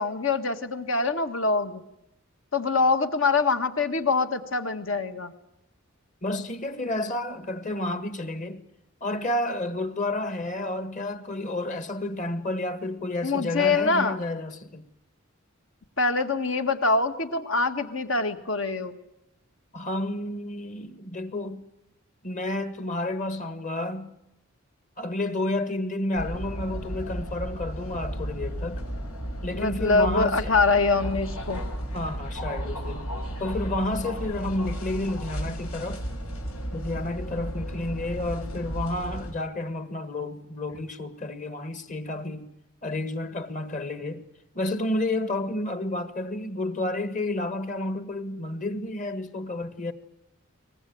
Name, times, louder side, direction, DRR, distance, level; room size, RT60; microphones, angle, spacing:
voice 1, 0.0-1.8 2.5-5.3 13.2-14.2 16.0-19.0 29.5-31.6, left 3 dB, 60° left, 1.7 m, -24 dB
voice 2, 6.2-8.6 9.0-14.9 19.7-21.6 22.2-24.1 25.0-28.8 29.4-30.6 31.9-33.1 33.4-36.0 36.7-42.5 42.8-44.3 44.5-49.9, left 1 dB, 35° left, 1.6 m, -30 dB
sound 1, 26.1-39.3, equal, 90° left, 5.9 m, -34 dB
23.0 x 20.0 x 9.4 m
head